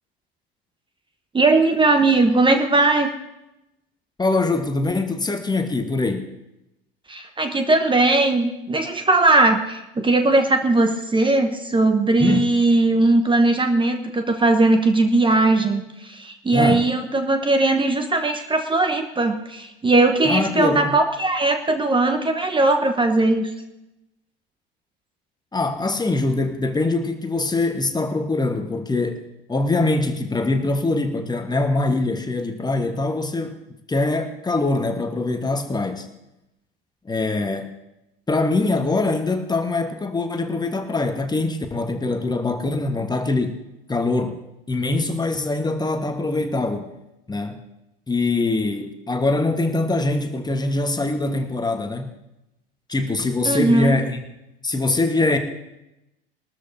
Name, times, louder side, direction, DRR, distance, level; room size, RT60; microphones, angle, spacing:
voice 1, 1.3-3.1 7.1-23.5 53.4-54.0, right 2 dB, 15° right, 6 dB, 1.2 m, -19 dB
voice 2, 4.2-6.3 12.2-12.4 16.5-16.8 20.2-21.0 25.5-29.2 29.5-33.6 33.9-36.1 37.0-37.7 38.3-43.6 43.9-44.4 44.7-46.9 47.3-47.6 48.1-52.2 52.9-54.2 54.6-55.4, left 2 dB, 15° left, 6 dB, 1.3 m, -23 dB
21.5 x 13.0 x 2.7 m, 0.91 s
figure-of-eight pair, 75°, 30 cm